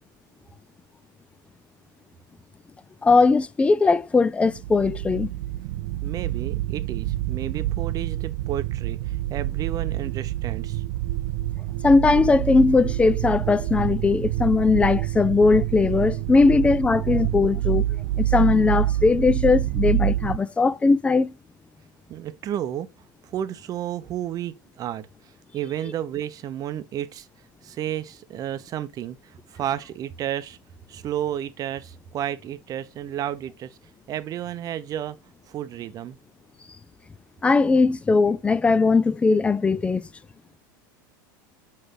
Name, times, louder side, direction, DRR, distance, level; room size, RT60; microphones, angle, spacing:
voice 1, 3.0-5.3 11.8-17.9 18.2-21.3 37.4-40.1, left 4 dB, 10° left, 0.3 m, -19 dB
sound 1, 4.5-20.4, right 15 dB, 65° right, 0.4 m, -27 dB
voice 2, 6.0-10.8 22.1-22.9 23.2-25.1 25.5-27.3 27.6-30.6 30.9-33.7 34.1-35.2 35.5-36.2, right 11 dB, 35° right, 0.7 m, -32 dB
8.0 x 3.2 x 3.8 m
supercardioid pair, 120°, 11 cm